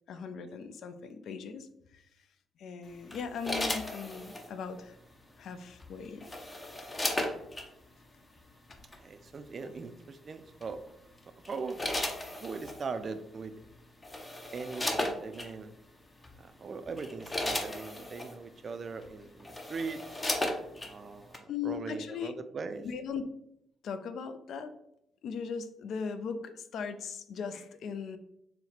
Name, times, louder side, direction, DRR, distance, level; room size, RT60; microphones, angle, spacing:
voice 1, 0.1-2.0 2.6-5.0 5.4-6.3 9.6-9.7 21.5-22.3 22.8-23.2 23.8-24.7 25.2-28.2, left 6 dB, 70° left, 10 dB, 0.4 m, -39 dB
sound 1, 3.1-4.5 5.8-7.7 8.7-9.0 10.6-10.9 11.4-12.8 13.6-13.7 14.0-15.5 16.2-16.4 16.8-18.3 19.0-19.1 19.4-20.9 21.3-21.4, left 1 dB, 20° left, 0.6 m, -35 dB
voice 2, 8.9-10.8 11.5-11.8 12.3-13.6 14.5-15.7 16.3-20.2 20.8-22.9, right 4 dB, 45° right, 11 dB, 0.3 m, -40 dB
4.2 x 2.1 x 4.0 m, 0.78 s
cardioid pair, 90°, 0 cm